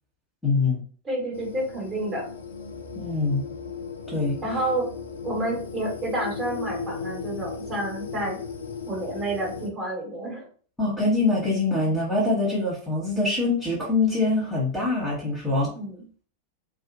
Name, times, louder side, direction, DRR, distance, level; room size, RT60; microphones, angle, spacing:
voice 1, 0.4-0.8 2.9-3.4 4.1-4.4 10.8-15.7, left 3 dB, ahead, -6 dB, 1.1 m, -24 dB
voice 2, 1.0-2.3 4.4-4.8 5.2-8.4 8.9-10.5 15.7-16.0, right 1 dB, 25° right, -3 dB, 1.3 m, -29 dB
sound 1, 1.3-9.7, left 5 dB, 70° left, 0.4 m, -36 dB
2.4 x 2.4 x 2.6 m, 0.42 s
figure-of-eight pair, 90°, 0 cm